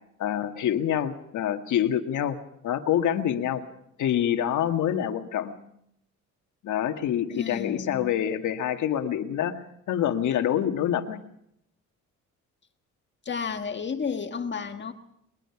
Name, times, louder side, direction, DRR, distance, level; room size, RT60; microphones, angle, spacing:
voice 1, 0.2-2.4 2.6-3.6 4.0-5.5 6.6-9.5 9.9-11.2, left 10 dB, 75° left, 1.9 m, -26 dB
voice 2, 7.3-8.1 13.2-14.9, left 6 dB, 40° left, 1.6 m, -32 dB
22.0 x 20.5 x 5.9 m
cardioid pair, 90°, 30 cm